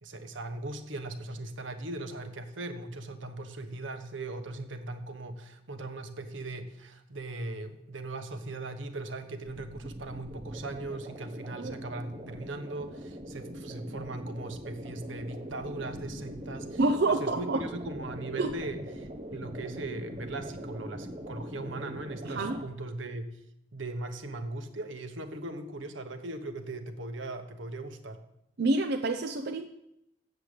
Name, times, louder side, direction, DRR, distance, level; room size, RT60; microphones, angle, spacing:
voice 1, 0.0-16.8 17.1-23.4 23.7-28.2, right 2 dB, 85° right, 8 dB, 1.1 m, -39 dB
sound 1, 9.4-22.6, equal, 35° right, 1.3 m, -42 dB
voice 2, 16.8-17.6 18.4-18.5 22.2-22.6 28.6-29.7, right 2 dB, 60° right, 6 dB, 0.6 m, -27 dB
7.6 x 6.9 x 8.2 m, 0.82 s
head